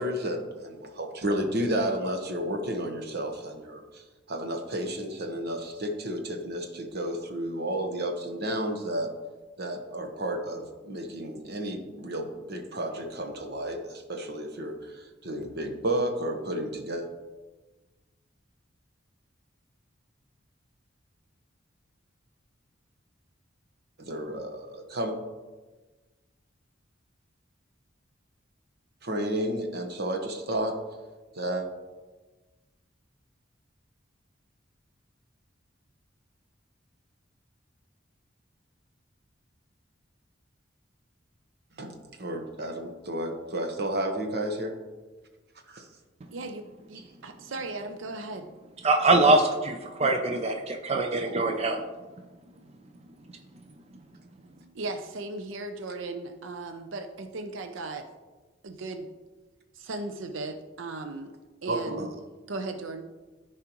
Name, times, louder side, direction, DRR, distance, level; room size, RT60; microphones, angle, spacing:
voice 1, 0.0-9.1 9.6-17.1 24.0-25.2 29.0-30.8 31.3-31.7 41.8-44.8 45.7-45.9 61.7-62.1, right 1 dB, 55° right, 4 dB, 1.1 m, -32 dB
voice 2, 46.3-46.6 46.9-48.4 54.7-58.1 58.6-59.1 59.8-61.3 61.6-62.1 62.5-63.0, right 2 dB, 85° right, 6 dB, 0.6 m, -36 dB
voice 3, 48.8-51.8, right 2 dB, 35° right, 4 dB, 0.5 m, -23 dB
14.0 x 4.8 x 3.0 m, 1.2 s
head